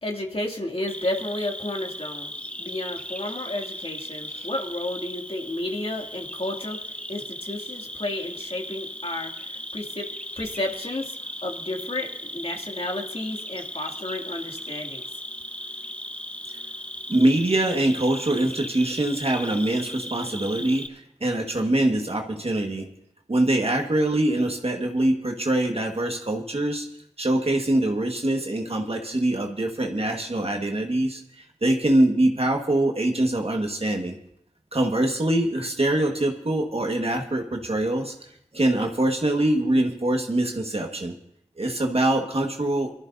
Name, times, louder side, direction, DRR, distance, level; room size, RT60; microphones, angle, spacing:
voice 1, 0.0-2.3 2.6-15.0, left 1 dB, 50° left, 0 dB, 2.5 m, -32 dB
Cricket, 0.9-20.9, left 1 dB, 10° left, 0.9 m, -37 dB
voice 2, 17.1-22.9 23.3-26.9 27.2-34.2 34.7-38.1 38.5-41.1 41.6-42.9, right 1 dB, 55° right, 2 dB, 1.6 m, -24 dB
23.5 x 14.0 x 2.7 m, 0.74 s
wide cardioid pair, 45°, 12 cm